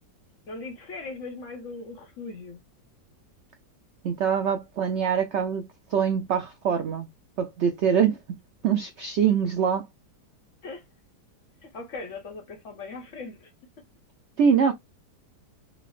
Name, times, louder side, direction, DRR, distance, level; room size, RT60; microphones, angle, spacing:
voice 1, 0.5-2.6 10.6-10.9 11.6-13.5, left 3 dB, 55° left, 1.0 m, -39 dB
voice 2, 4.0-7.1 7.4-8.2 8.6-9.9 14.4-14.7, right 7 dB, 85° right, 0.6 m, -24 dB
4.0 x 2.0 x 3.0 m
omnidirectional pair, 1.8 m